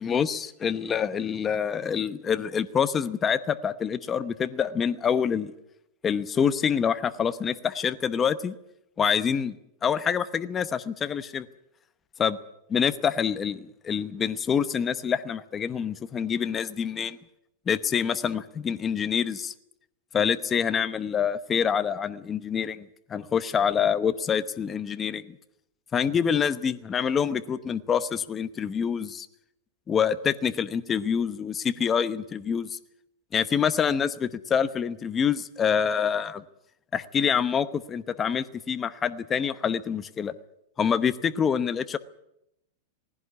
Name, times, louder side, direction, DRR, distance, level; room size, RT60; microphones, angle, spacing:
voice 1, 0.0-5.5 6.0-8.5 9.0-9.5 9.8-11.5 12.2-12.4 12.7-17.2 17.7-19.5 20.1-25.4 25.9-29.3 29.9-32.8 33.3-36.4 36.9-40.3 40.8-42.0, left 7 dB, 20° left, 12 dB, 0.9 m, -26 dB
19.0 x 16.0 x 9.5 m, 0.81 s
supercardioid pair, 150°, 0 cm